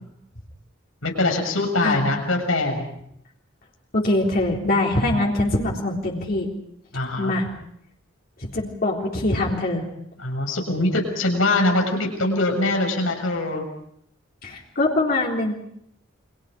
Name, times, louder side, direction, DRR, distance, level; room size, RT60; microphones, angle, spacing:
voice 1, 1.0-2.9 6.9-7.3 10.2-13.6, left 2 dB, 90° left, 3 dB, 7.0 m, -23 dB
voice 2, 3.9-6.5 7.2-7.5 8.4-9.8 14.4-15.5, left 2 dB, 50° left, -2 dB, 3.7 m, -23 dB
30.0 x 25.0 x 5.0 m, 0.73 s
head